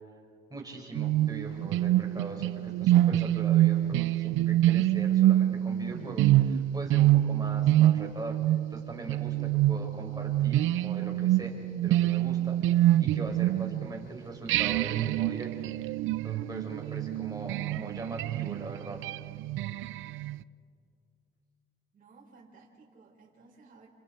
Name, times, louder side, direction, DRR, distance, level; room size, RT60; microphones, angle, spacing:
voice 1, 0.5-15.5 15.8-15.9 16.2-19.0, right 2 dB, 20° right, 0 dB, 5.3 m, -41 dB
sound 1, 1.0-14.0 14.5-20.4, right 13 dB, 85° right, 0.5 m, -26 dB
voice 2, 21.9-23.9, right 4 dB, 45° right, -3 dB, 4.7 m, -56 dB
29.5 x 25.5 x 4.5 m, 2.3 s
cardioid pair, 90°, 20 cm